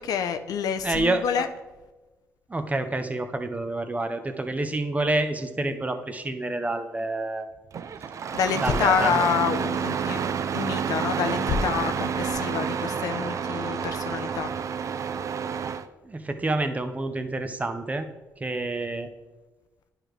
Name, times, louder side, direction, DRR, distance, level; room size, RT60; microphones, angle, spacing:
voice 1, 0.0-1.5 8.3-14.5, left 7 dB, 75° left, 9 dB, 0.5 m, -27 dB
voice 2, 0.8-1.5 2.5-7.5 8.6-9.2 16.0-18.1 18.4-19.1, right 2 dB, 25° right, 8 dB, 0.8 m, -28 dB
Engine starting, 7.7-15.8, right 7 dB, 55° right, 0.4 m, -29 dB
10.0 x 4.9 x 3.2 m, 1.1 s
supercardioid pair, 65°, 6 cm